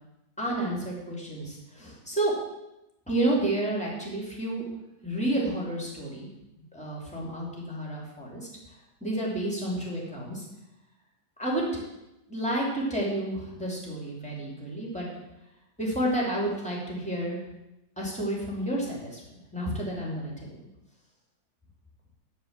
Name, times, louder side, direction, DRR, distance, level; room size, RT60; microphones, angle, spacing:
voice 1, 0.4-2.3 3.1-4.6 5.0-6.3 6.7-8.5 9.0-10.4 11.4-11.6 12.3-15.1 15.8-17.4 18.0-19.2 19.5-20.6, right 1 dB, 5° left, -3 dB, 2.9 m, -30 dB
12.0 x 4.8 x 7.4 m, 0.92 s
omnidirectional pair, 1.9 m